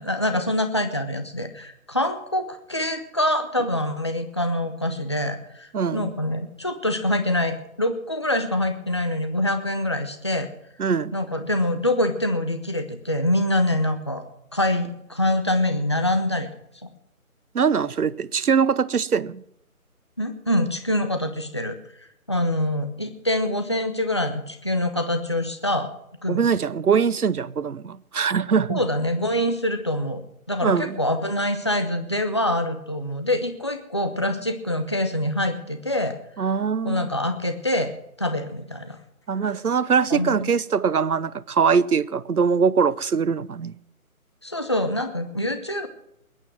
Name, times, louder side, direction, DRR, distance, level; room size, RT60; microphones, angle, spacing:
voice 1, 0.0-10.5 11.1-14.2 14.5-16.5 20.2-21.8 22.3-25.9 26.2-26.4 28.7-30.2 30.5-36.2 36.8-37.9 38.2-39.0 40.1-40.3 44.4-45.9, left 1 dB, 20° left, 0.6 m, -25 dB
voice 2, 5.7-6.1 10.8-11.2 17.5-19.4 26.3-28.8 30.6-31.0 36.4-37.1 39.3-43.7, right 6 dB, 90° right, 0.8 m, -22 dB
21.0 x 9.2 x 6.1 m
figure-of-eight pair, 160°, 43 cm